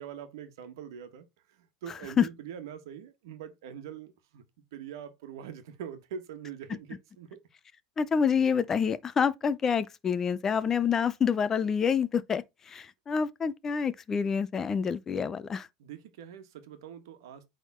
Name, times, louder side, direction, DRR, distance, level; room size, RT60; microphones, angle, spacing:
voice 1, 0.0-4.4 4.7-7.4 15.8-17.5, right 8 dB, 90° right, 1.3 m, -43 dB
voice 2, 8.0-15.7, left 6 dB, 20° left, 0.5 m, -27 dB
8.4 x 3.6 x 3.6 m
supercardioid pair, 165°, 2 cm